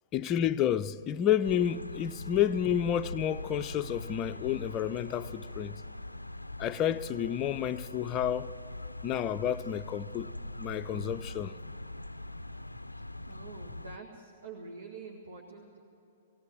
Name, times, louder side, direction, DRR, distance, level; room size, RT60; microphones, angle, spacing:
voice 1, 0.1-5.8 6.6-8.5 9.0-10.3 10.6-11.5, left 10 dB, 25° left, 0.5 m, -30 dB
sound 1, 1.4-14.0, left 2 dB, 85° left, 0.4 m, -42 dB
voice 2, 13.3-15.8, right 4 dB, 65° right, 2.0 m, -46 dB
20.5 x 17.5 x 7.6 m
figure-of-eight pair, 110°, 0 cm